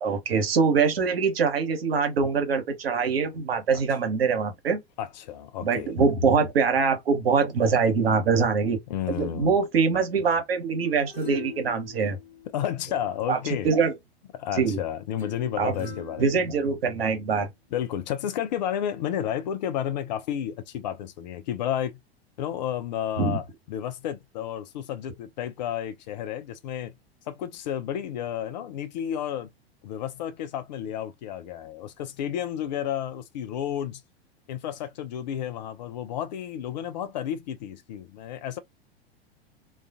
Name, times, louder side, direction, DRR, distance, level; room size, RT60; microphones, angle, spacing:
voice 1, 0.0-4.8 5.6-8.8 9.2-12.2 13.3-13.4 13.6-13.9 14.6-14.8 15.6-15.7 16.2-17.5 23.2-23.4, right 5 dB, 65° right, 0.9 m, -23 dB
voice 2, 5.0-5.9 8.9-9.6 12.5-13.7 14.3-16.3 17.7-22.0 22.4-26.9 27.3-29.5 29.8-34.0 34.5-38.6, left 10 dB, 45° left, 0.5 m, -31 dB
sound 1, 10.8-13.2 15.2-17.2 17.7-17.8, left 6 dB, 85° left, 1.3 m, -43 dB
2.4 x 2.2 x 2.4 m
figure-of-eight pair, 95°, 31 cm